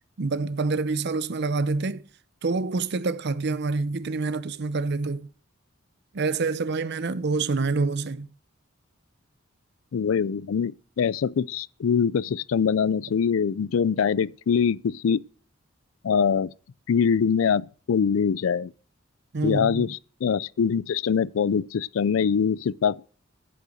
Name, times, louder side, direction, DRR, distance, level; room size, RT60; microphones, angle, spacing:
voice 1, 0.2-2.1 2.4-5.3 6.1-8.3 19.3-19.8, right 3 dB, 55° right, 0.6 m, -27 dB
voice 2, 9.9-15.2 16.0-16.5 16.9-18.7 19.4-23.1, left 6 dB, 80° left, 0.4 m, -23 dB
12.0 x 5.5 x 6.4 m
head